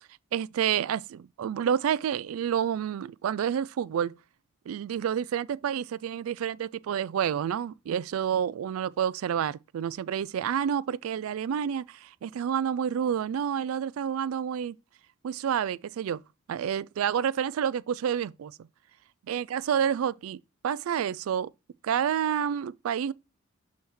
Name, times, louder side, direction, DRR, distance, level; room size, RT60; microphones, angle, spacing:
voice 1, 0.3-4.1 4.7-14.8 15.2-16.2 16.5-18.6 19.3-20.4 20.6-21.5 21.8-23.1, right 8 dB, 85° right, 0.3 m, -29 dB
6.2 x 3.5 x 4.4 m
head